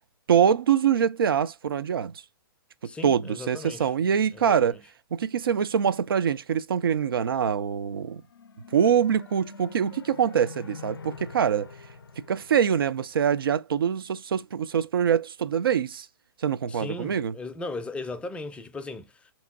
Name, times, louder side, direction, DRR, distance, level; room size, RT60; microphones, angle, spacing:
voice 1, 0.3-2.2 2.8-4.8 5.1-8.2 8.7-11.7 12.3-16.1 16.4-17.3, right 8 dB, 75° right, 0.4 m, -24 dB
voice 2, 2.8-3.9 4.3-4.8 16.7-19.3, left 2 dB, 10° left, 0.4 m, -37 dB
sound 1, 8.0-13.5, left 5 dB, 85° left, 0.4 m, -46 dB
5.0 x 2.9 x 2.3 m
hypercardioid pair, 120°, 12 cm